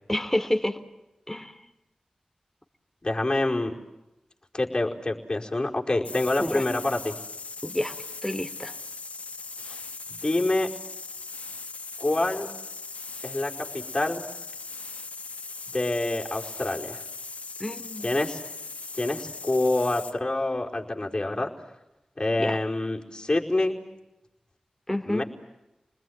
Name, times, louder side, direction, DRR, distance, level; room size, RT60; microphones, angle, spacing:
voice 1, 0.1-0.8 1.3-1.5 6.4-6.6 7.6-7.9 8.2-8.7 17.6-18.1 22.4-22.6 24.9-25.2, left 1 dB, 10° left, 7 dB, 3.6 m, -28 dB
voice 2, 3.0-3.7 4.5-7.1 9.6-9.8 10.1-10.7 12.0-12.5 13.2-14.3 15.7-17.0 18.0-18.4 18.9-21.5 22.2-23.8 25.0-25.2, left 2 dB, 35° left, 0 dB, 4.8 m, -27 dB
sound 1, 6.0-20.2, left 4 dB, 70° left, 1.5 m, -39 dB
30.0 x 20.5 x 9.6 m, 0.94 s
cardioid pair, 50°, 2 cm